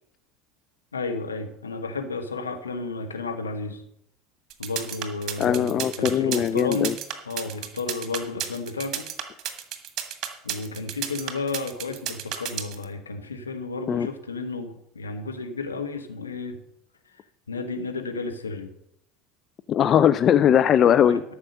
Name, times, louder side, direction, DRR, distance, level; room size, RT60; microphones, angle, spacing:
voice 1, 0.9-3.8 4.6-7.0 7.2-9.1 10.4-16.6 17.5-18.7 21.1-21.2, left 3 dB, 80° left, 5 dB, 1.3 m, -32 dB
sound 1, 4.5-12.8, right 10 dB, 40° right, 1.7 m, -32 dB
voice 2, 5.4-6.9 13.9-14.1 19.7-21.2, left 9 dB, 35° left, 14 dB, 0.4 m, -20 dB
13.0 x 6.0 x 6.5 m, 0.76 s
figure-of-eight pair, 70°, 0 cm